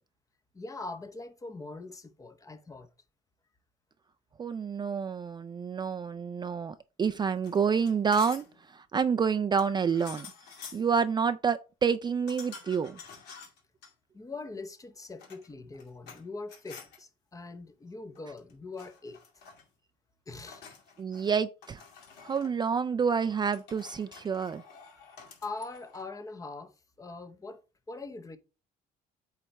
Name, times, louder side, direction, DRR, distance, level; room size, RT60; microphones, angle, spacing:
voice 1, 0.5-2.9 14.1-19.2 20.3-20.6 25.4-27.6 27.9-28.4, left 3 dB, 20° left, 0.8 m, -42 dB
voice 2, 4.4-10.3 10.7-13.0 21.0-21.8 22.2-24.6, right 6 dB, 25° right, 0.3 m, -28 dB
sound 1, 7.4-8.6 9.6-10.9 12.3-13.9 15.0-16.2 16.5-17.0 18.2-18.5 18.8-19.7 20.5-21.3 21.6-22.5 23.5-26.1, left 6 dB, 80° left, 2.3 m, -49 dB
8.3 x 3.4 x 4.1 m
cardioid pair, 110°, 17 cm